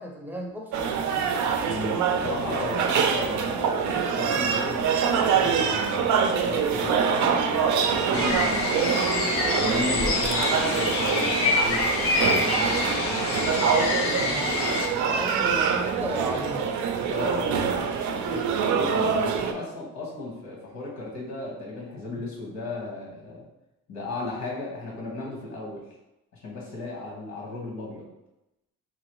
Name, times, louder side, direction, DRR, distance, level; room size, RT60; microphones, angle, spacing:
voice 1, 0.0-1.3 14.0-14.5 15.0-16.8, right 1 dB, 5° right, 0 dB, 0.6 m, -35 dB
sound 1, 0.7-19.5, right 6 dB, 75° right, 0.4 m, -25 dB
voice 2, 1.7-14.0 17.1-17.6 18.0-23.4 23.9-25.8 26.4-28.1, left 2 dB, 65° left, -4 dB, 1.4 m, -35 dB
sound 2, 8.1-14.9, left 2 dB, 50° left, 0.6 m, -26 dB
3.1 x 2.5 x 3.0 m, 0.93 s
cardioid pair, 90°, 30 cm